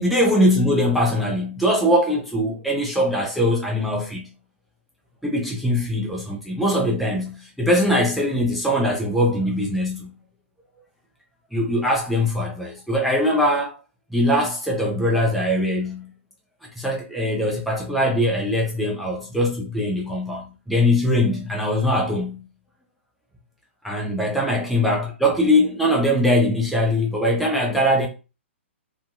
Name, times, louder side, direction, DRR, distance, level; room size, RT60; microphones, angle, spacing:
voice 1, 0.0-4.3 5.2-10.1 11.5-13.8 14.1-16.1 16.8-22.4 23.8-28.1, left 1 dB, ahead, 0.4 m, -21 dB
2.6 x 2.3 x 2.4 m
figure-of-eight pair, 120°, 7 cm